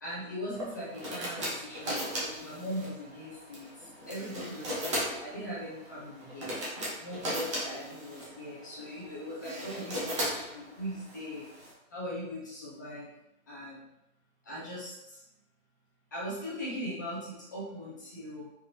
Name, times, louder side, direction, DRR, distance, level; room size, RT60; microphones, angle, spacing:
voice 1, 0.0-6.6 7.0-11.5 11.9-13.1 13.5-13.8 14.4-15.2 16.1-18.5, equal, 15° left, -8 dB, 0.6 m, -40 dB
sound 1, 0.5-11.7, equal, 20° right, 0.6 m, -37 dB
4.4 x 3.4 x 2.9 m, 0.86 s
hypercardioid pair, 175°, 41 cm